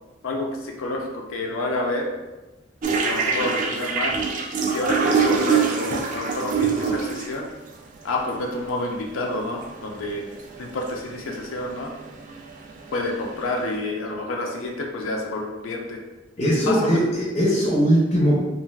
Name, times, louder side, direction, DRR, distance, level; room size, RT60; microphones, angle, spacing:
voice 1, 0.2-2.1 2.9-4.2 4.6-7.4 8.0-10.2 10.6-11.9 12.9-16.0 16.4-17.0, left 2 dB, 80° left, 0 dB, 0.4 m, -29 dB
sound 1, 2.8-7.4 8.4-8.5 8.9-9.0 9.3-9.7 10.1-10.5 10.9-13.2, right 5 dB, 40° right, 0.3 m, -24 dB
voice 2, 16.4-18.4, equal, 35° left, -5 dB, 0.5 m, -20 dB
3.2 x 2.4 x 2.3 m, 1.1 s
head